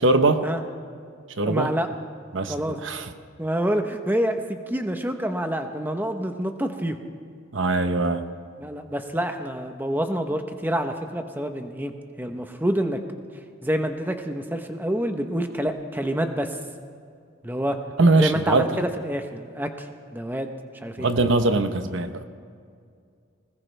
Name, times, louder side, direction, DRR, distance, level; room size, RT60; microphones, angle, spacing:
voice 1, 0.0-0.4 1.4-1.7 2.3-3.1 7.5-8.2 18.0-18.8 21.0-22.2, right 2 dB, 75° right, 8 dB, 0.9 m, -21 dB
voice 2, 1.5-1.9 2.5-2.8 3.4-7.0 8.6-11.9 12.2-13.0 13.6-16.5 17.4-17.8 18.2-19.7 20.1-20.5 20.8-21.1, right 1 dB, 10° right, 6 dB, 0.9 m, -27 dB
20.5 x 19.5 x 3.4 m, 2.3 s
head